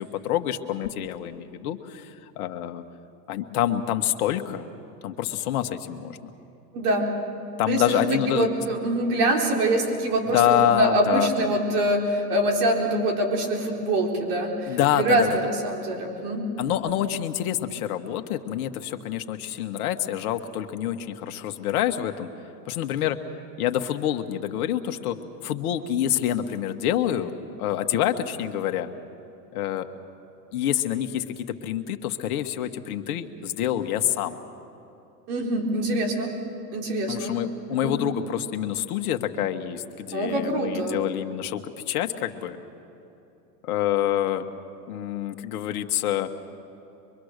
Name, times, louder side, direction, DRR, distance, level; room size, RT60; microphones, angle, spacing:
voice 1, 0.0-2.8 3.3-4.6 5.0-6.3 7.6-8.5 10.3-11.5 14.7-15.3 16.6-22.3 22.7-23.2 23.6-25.2 25.4-27.3 27.6-28.9 29.5-29.9 30.5-34.4 37.1-42.6 43.6-44.4 44.9-46.4, left 11 dB, 60° left, 6 dB, 1.5 m, -27 dB
voice 2, 6.7-7.1 7.7-16.5 35.3-36.4 36.7-37.4 37.7-37.9 40.1-41.0, right 1 dB, 65° right, 1 dB, 4.2 m, -24 dB
24.0 x 23.5 x 6.6 m, 2.9 s
hypercardioid pair, 120°, 49 cm